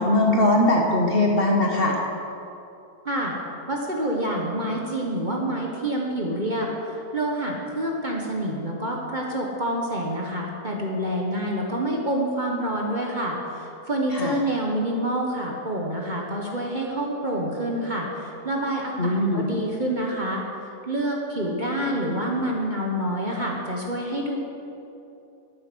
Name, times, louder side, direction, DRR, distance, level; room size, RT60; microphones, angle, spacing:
voice 1, 0.0-2.0 14.1-14.3 19.0-19.5, left 1 dB, 40° left, 0 dB, 1.3 m, -20 dB
voice 2, 3.7-20.4 20.9-24.4, right 1 dB, 30° right, -1 dB, 1.3 m, -27 dB
12.5 x 9.3 x 6.2 m, 2.8 s
omnidirectional pair, 1.7 m